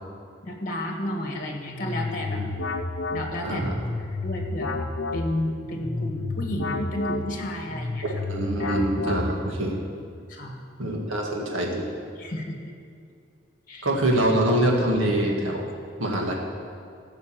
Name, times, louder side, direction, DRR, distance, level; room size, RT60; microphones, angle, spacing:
voice 1, 0.4-2.4 3.1-3.6 4.2-8.0 8.6-8.8 10.3-10.7 12.2-12.7 13.7-13.9, left 1 dB, 40° left, 2 dB, 1.6 m, -32 dB
sound 1, 1.6-9.7, left 3 dB, 70° left, 0.8 m, -31 dB
voice 2, 8.3-9.8 10.8-11.8 13.8-15.6 16.0-16.3, right 1 dB, 85° right, 0 dB, 2.0 m, -24 dB
15.5 x 5.5 x 7.5 m, 2.4 s
head